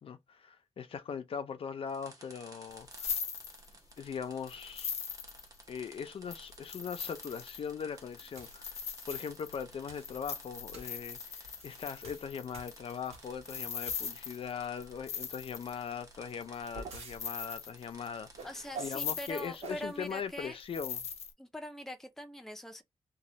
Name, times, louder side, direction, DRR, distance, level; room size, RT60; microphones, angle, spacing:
voice 1, 0.0-3.2 4.0-4.9 5.7-18.5 18.8-21.1, left 7 dB, 60° left, 0.5 m, -40 dB
sound 1, 1.9-19.6, right 2 dB, 35° right, 0.9 m, -57 dB
sound 2, 2.7-4.0 4.5-5.8 6.3-15.9 16.4-16.8 17.1-18.1 18.4-18.5 18.8-19.7 20.0-21.3, left 6 dB, 90° left, 0.8 m, -41 dB
sound 3, 8.4-8.6 9.1-9.4 9.9-10.2 10.7-11.0 11.4-13.4 13.8-14.4 16.3-17.2 18.4-19.0 19.6-19.9, right 4 dB, 85° right, 1.0 m, -47 dB
voice 2, 18.4-20.6 21.4-22.8, left 1 dB, 5° left, 0.5 m, -42 dB
3.1 x 2.2 x 2.8 m
wide cardioid pair, 155°, 11 cm